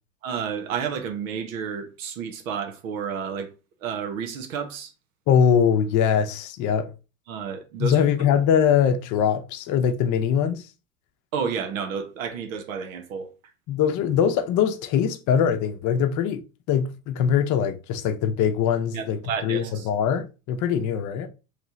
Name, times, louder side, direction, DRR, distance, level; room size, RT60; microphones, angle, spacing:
voice 1, 0.2-3.5 3.8-4.9 7.3-8.0 11.3-13.3 18.9-19.9, right 6 dB, 80° right, 1.0 m, -31 dB
voice 2, 5.3-6.9 7.8-10.6 13.7-16.4 16.7-21.3, left 8 dB, 45° left, 0.7 m, -22 dB
3.2 x 3.0 x 3.8 m
hypercardioid pair, 100°, 40 cm